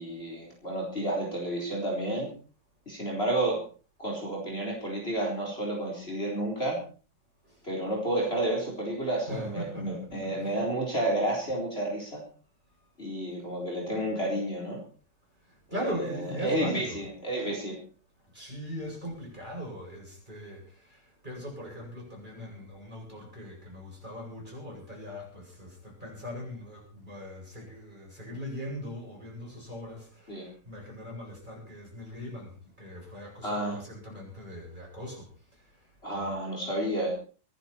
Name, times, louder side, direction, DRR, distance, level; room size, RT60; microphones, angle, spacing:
voice 1, 0.0-2.3 2.9-3.6 4.0-6.8 7.6-12.2 13.0-14.8 15.7-17.8 30.3-30.5 33.4-33.8 36.0-37.1, right 1 dB, 35° left, -2 dB, 4.5 m, -31 dB
voice 2, 9.3-10.6 15.5-17.1 18.3-35.3 36.1-36.3, equal, 25° right, -2 dB, 8.4 m, -40 dB
25.0 x 11.0 x 4.5 m, 0.39 s
omnidirectional pair, 1.9 m